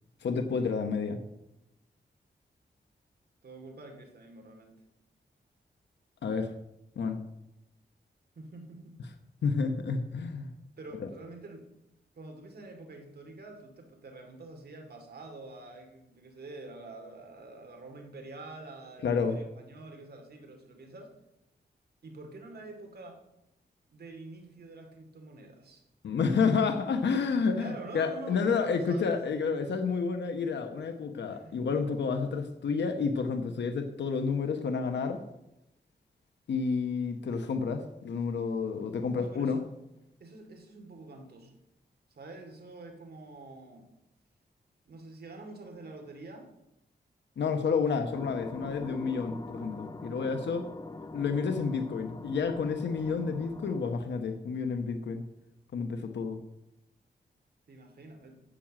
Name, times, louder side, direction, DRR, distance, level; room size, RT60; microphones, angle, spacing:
voice 1, 0.2-1.2 6.2-6.5 7.0-7.2 9.4-10.5 11.0-11.1 19.0-19.4 26.0-35.2 36.5-39.6 47.4-50.7 51.1-55.2 55.7-56.4, left 5 dB, 85° left, 6 dB, 1.1 m, -30 dB
voice 2, 3.4-4.8 8.4-9.0 10.8-11.7 12.1-21.2 22.0-23.2 23.9-25.8 27.6-29.0 31.2-31.8 39.1-39.6 40.2-41.6 42.1-43.9 44.9-46.5 47.6-48.1 57.7-58.3, right 2 dB, 65° right, 4 dB, 2.5 m, -47 dB
sound 1, 48.1-54.0, left 2 dB, 20° left, 0.7 m, -43 dB
10.0 x 7.4 x 7.5 m, 0.86 s
wide cardioid pair, 100°, 18 cm